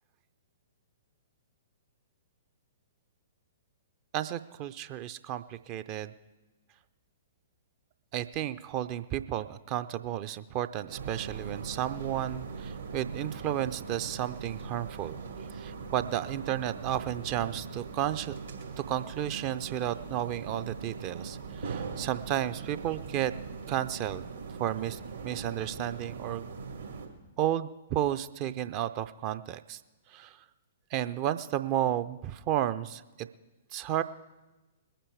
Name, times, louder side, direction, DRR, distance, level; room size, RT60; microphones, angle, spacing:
voice 1, 4.1-6.1 8.1-15.2 15.5-18.4 18.9-23.3 23.7-24.3 24.6-26.5 27.4-29.8 30.1-30.4 30.9-33.3 33.7-34.0, right 12 dB, 35° right, 13 dB, 0.5 m, -32 dB
sound 1, 10.9-27.1, right 5 dB, 70° right, 2.2 m, -41 dB
21.0 x 9.0 x 4.9 m, 1.1 s
figure-of-eight pair, 115°, 0 cm